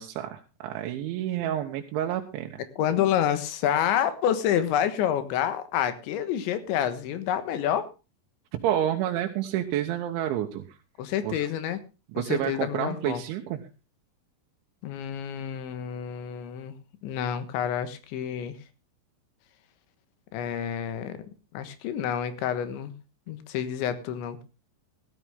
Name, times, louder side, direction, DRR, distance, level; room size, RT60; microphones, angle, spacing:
voice 1, 0.0-2.6 8.6-10.6 11.2-11.5 12.1-13.6, right 11 dB, 85° right, 3 dB, 3.4 m, -29 dB
voice 2, 2.8-7.8 11.0-11.8 12.3-13.2 14.8-16.7 17.0-18.6 20.3-21.2 21.6-22.9 23.3-24.4, left 10 dB, 75° left, 11 dB, 3.7 m, -28 dB
16.5 x 13.0 x 3.6 m, 0.30 s
omnidirectional pair, 5.3 m